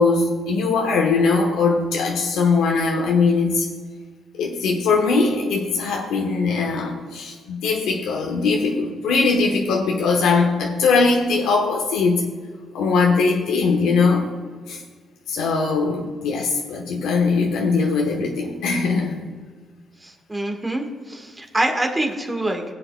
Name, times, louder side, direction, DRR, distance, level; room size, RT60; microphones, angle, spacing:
voice 1, 0.0-3.7 4.3-12.2 12.7-14.3 14.7-14.8 15.3-19.3, left 4 dB, 90° left, 0 dB, 1.1 m, -20 dB
voice 2, 20.0-22.6, right 1 dB, 15° right, 2 dB, 1.5 m, -25 dB
20.5 x 7.8 x 2.2 m, 1.5 s
cardioid pair, 90°, 0 cm